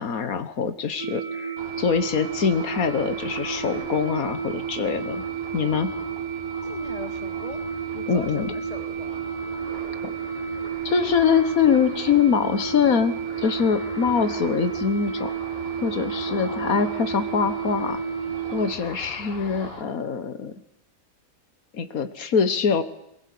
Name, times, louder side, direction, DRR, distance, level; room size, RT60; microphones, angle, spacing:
voice 1, 0.0-5.2 5.5-5.9 8.1-8.5 10.0-10.2 10.9-15.3 15.8-18.0 18.5-20.5 21.7-22.8, left 6 dB, 85° left, 11 dB, 1.7 m, -24 dB
sound 1, 1.0-18.7, right 7 dB, 75° right, 1.9 m, -31 dB
Ocean, 1.6-19.8, left 1 dB, 45° left, 3.5 m, -41 dB
voice 2, 6.6-7.6 7.9-9.3, left 3 dB, 25° left, 7 dB, 2.1 m, -40 dB
22.5 x 20.5 x 8.5 m, 0.82 s
omnidirectional pair, 1.5 m